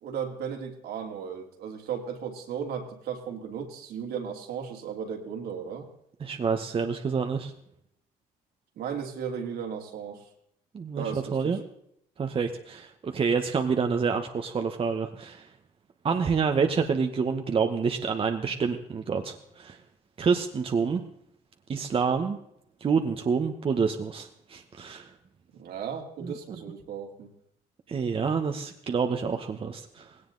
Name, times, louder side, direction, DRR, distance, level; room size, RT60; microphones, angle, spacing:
voice 1, 0.0-5.9 8.8-10.2 11.0-11.6 25.6-27.3, right 7 dB, 70° right, 2 dB, 2.9 m, -35 dB
voice 2, 6.2-7.5 10.7-11.6 12.2-15.5 16.0-19.8 20.2-21.0 21.7-22.4 22.8-25.1 26.2-26.3 27.9-30.1, right 5 dB, 35° right, 5 dB, 1.1 m, -28 dB
18.0 x 17.5 x 4.0 m, 0.73 s
cardioid pair, 110°, 17 cm